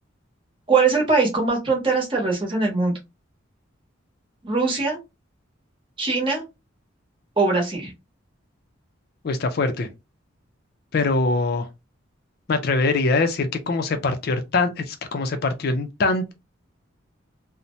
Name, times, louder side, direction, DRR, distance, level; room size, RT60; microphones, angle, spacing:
voice 1, 0.7-2.9 4.4-5.0 6.0-6.4 7.4-7.9, right 4 dB, 25° right, 0.9 m, -21 dB
voice 2, 9.2-9.9 10.9-11.7 12.5-16.3, left 3 dB, 50° left, 0.4 m, -23 dB
2.7 x 2.0 x 3.0 m
head